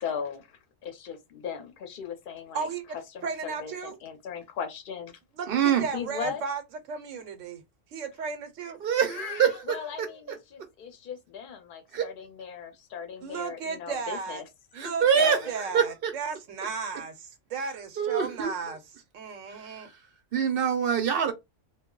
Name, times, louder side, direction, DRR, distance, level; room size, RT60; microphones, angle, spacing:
voice 1, 0.0-2.7 3.1-5.1 5.9-6.4 9.1-14.4 15.2-15.5, left 7 dB, 50° left, 0.7 m, -38 dB
voice 2, 2.5-3.0 3.2-4.0 5.3-6.6 6.9-7.6 7.9-8.8 13.2-14.4 14.7-18.8 19.1-19.9, right 5 dB, 90° right, 1.0 m, -35 dB
voice 3, 5.5-5.9 8.8-10.1 11.9-12.1 14.7-16.1 18.0-18.5 19.5-19.9 20.3-21.3, right 7 dB, 60° right, 0.7 m, -25 dB
2.3 x 2.0 x 3.6 m
omnidirectional pair, 1.3 m